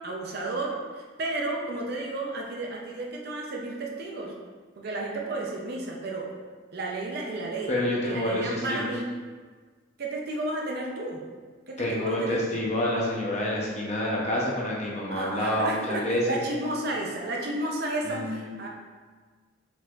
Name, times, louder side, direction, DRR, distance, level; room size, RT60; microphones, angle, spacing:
voice 1, 0.0-4.4 4.8-6.3 6.7-7.7 8.0-9.2 10.0-11.2 11.7-12.6 15.1-18.7, right 2 dB, 50° right, -1 dB, 0.6 m, -32 dB
voice 2, 7.7-8.8 11.8-16.4 18.0-18.4, left 1 dB, 35° left, -4 dB, 0.8 m, -28 dB
4.8 x 4.0 x 2.5 m, 1.4 s
head